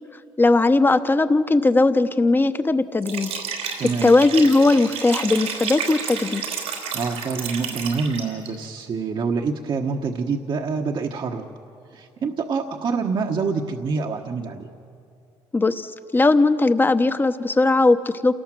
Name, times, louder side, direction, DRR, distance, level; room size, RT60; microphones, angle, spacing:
voice 1, 0.4-3.3 3.8-6.4 15.5-18.3, left 2 dB, 20° left, 11 dB, 1.0 m, -18 dB
Liquid, 3.0-8.5, right 6 dB, 90° right, 4.1 m, -31 dB
voice 2, 3.8-4.1 6.9-11.4 11.9-14.7, right 5 dB, 50° right, 2 dB, 1.2 m, -26 dB
28.0 x 18.5 x 7.6 m, 2.6 s
cardioid pair, 95°, 11 cm